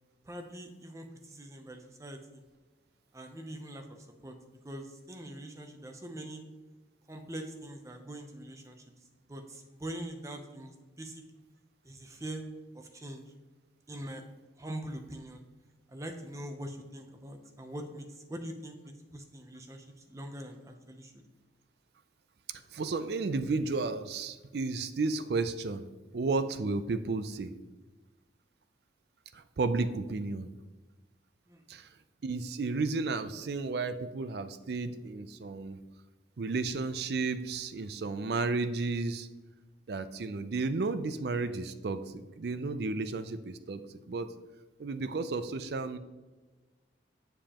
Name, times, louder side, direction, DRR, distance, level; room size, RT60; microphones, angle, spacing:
voice 1, 0.2-2.4 3.1-4.3 4.6-6.4 7.1-8.8 9.3-11.2 11.8-12.4 12.7-13.2 13.9-14.2 14.6-15.4 15.9-21.1 31.5-31.6, right 1 dB, 15° right, 5 dB, 0.6 m, -43 dB
voice 2, 22.7-25.9 26.1-27.5 29.3-30.5 31.7-31.9 32.2-35.8 36.4-39.3 39.9-44.3 44.8-46.0, right 3 dB, 60° right, 11 dB, 0.4 m, -33 dB
7.3 x 6.8 x 2.9 m, 1.2 s
head